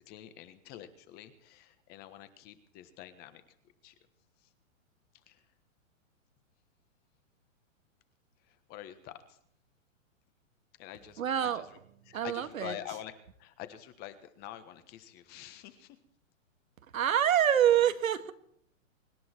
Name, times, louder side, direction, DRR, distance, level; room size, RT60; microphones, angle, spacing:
voice 1, 0.0-3.4 3.8-3.9 4.4-4.5 5.3-5.4 8.5-9.4 10.8-11.6 12.1-13.1 13.4-16.0, left 12 dB, 25° left, 11 dB, 1.4 m, -46 dB
voice 2, 11.2-11.7 12.1-12.8 16.9-18.3, right 10 dB, 85° right, 9 dB, 2.0 m, -26 dB
25.0 x 11.0 x 4.5 m, 0.68 s
hypercardioid pair, 155°, 40 cm